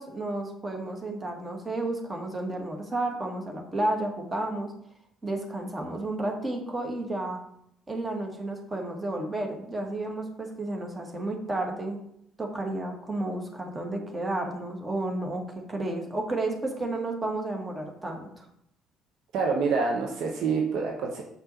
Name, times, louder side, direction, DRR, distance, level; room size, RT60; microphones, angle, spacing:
voice 1, 0.0-4.7 5.2-7.4 7.9-12.0 12.4-15.4 15.7-18.4, right 2 dB, 20° right, 2 dB, 1.7 m, -32 dB
voice 2, 19.3-21.2, right 4 dB, 55° right, 0 dB, 0.9 m, -27 dB
7.3 x 5.5 x 4.1 m, 0.74 s
figure-of-eight pair, 50°, 0 cm